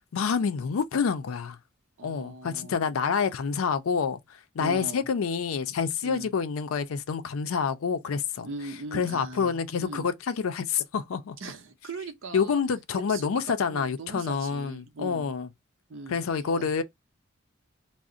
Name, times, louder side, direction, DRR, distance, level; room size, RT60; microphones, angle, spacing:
voice 1, 0.1-1.6 2.0-4.2 4.6-8.5 8.9-11.4 12.3-15.5 16.1-16.8, left 6 dB, 80° left, 0.4 m, -28 dB
voice 2, 2.0-2.9 4.6-5.1 6.0-6.3 8.4-10.1 11.4-12.6 12.9-13.3 13.7-15.3 15.9-16.7, right 3 dB, 65° right, 0.6 m, -40 dB
2.4 x 2.0 x 3.7 m
head